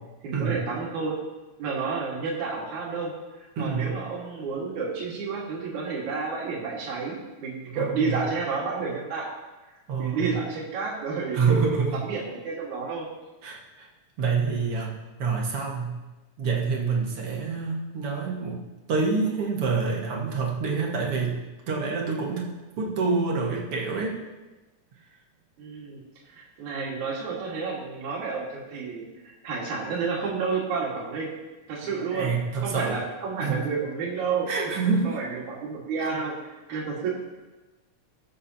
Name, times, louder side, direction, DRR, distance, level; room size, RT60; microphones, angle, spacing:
voice 1, 0.2-1.2 1.6-3.1 3.4-9.3 10.0-11.6 12.0-13.1 25.6-26.0 26.3-31.3 31.7-32.3 32.6-34.7 35.0-36.3 36.7-37.1, right 4 dB, 80° right, -4 dB, 3.3 m, -30 dB
voice 2, 3.6-4.0 7.7-8.2 9.9-10.4 11.3-12.0 13.4-13.9 14.2-16.0 16.4-18.6 18.9-21.4 21.7-22.5 22.8-24.2 31.9-33.0 33.4-33.7 34.5-35.2 36.0-36.1 36.7-36.8, right 4 dB, 55° right, -2 dB, 2.4 m, -27 dB
20.0 x 7.6 x 2.9 m, 1.1 s
omnidirectional pair, 3.3 m